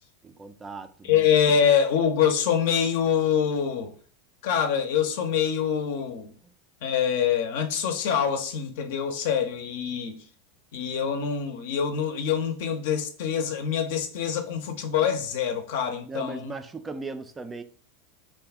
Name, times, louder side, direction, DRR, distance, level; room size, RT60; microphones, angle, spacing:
voice 1, 0.2-1.3 6.4-6.5 16.1-17.6, right 3 dB, 20° right, 0.3 m, -38 dB
voice 2, 1.0-3.9 4.4-6.3 6.8-10.2 10.7-16.5, left 8 dB, 65° left, 0.5 m, -25 dB
2.6 x 2.3 x 3.5 m
hypercardioid pair, 90°, 0 cm